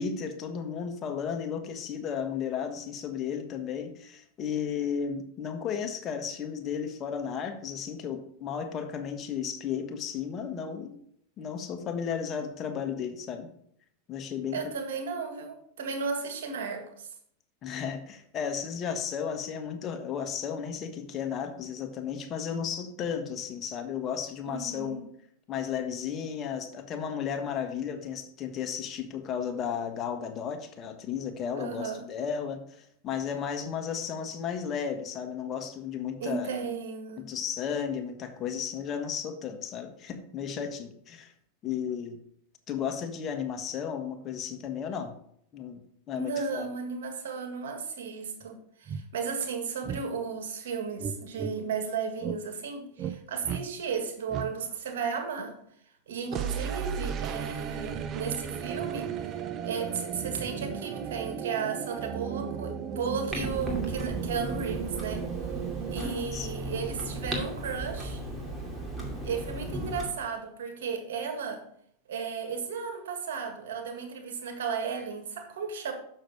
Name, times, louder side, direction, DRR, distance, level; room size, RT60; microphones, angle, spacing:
voice 1, 0.0-11.0 11.4-13.5 14.1-14.7 17.6-25.1 25.5-36.5 37.2-41.3 41.6-42.2 42.7-45.1 45.5-45.8 46.1-46.7 53.5-53.6 64.3-64.5 65.9-66.5, left 7 dB, 35° left, 6 dB, 1.4 m, -34 dB
voice 2, 14.5-17.1 24.5-25.1 31.5-32.1 36.2-37.3 46.1-55.5 56.1-59.3 59.6-65.3 65.9-68.2 69.2-71.7 72.1-75.9, right 5 dB, 80° right, 5 dB, 1.8 m, -34 dB
sound 1, 48.4-48.5 48.9-49.0 49.8-50.0 51.0-51.5 52.2-52.4 53.0-53.2 53.4-53.6 54.3-54.5 56.3-66.1, right 8 dB, 35° right, 0.6 m, -35 dB
Clock, 63.3-70.1, right 1 dB, 15° right, 2.3 m, -36 dB
6.7 x 6.3 x 4.8 m, 0.68 s
hypercardioid pair, 110°, 0 cm